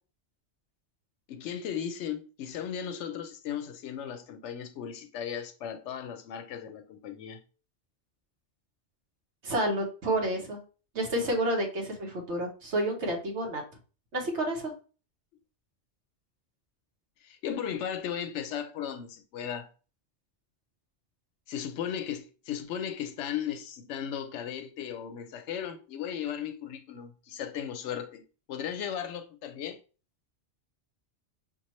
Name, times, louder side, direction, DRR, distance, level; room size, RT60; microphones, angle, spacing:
voice 1, 1.3-7.4 17.2-19.7 21.5-28.2 28.5-29.8, left 9 dB, 90° left, 0.9 m, -36 dB
voice 2, 9.4-10.6 10.9-13.6 14.1-14.7, right 1 dB, 80° right, 1.5 m, -29 dB
6.0 x 2.4 x 3.0 m
omnidirectional pair, 1.1 m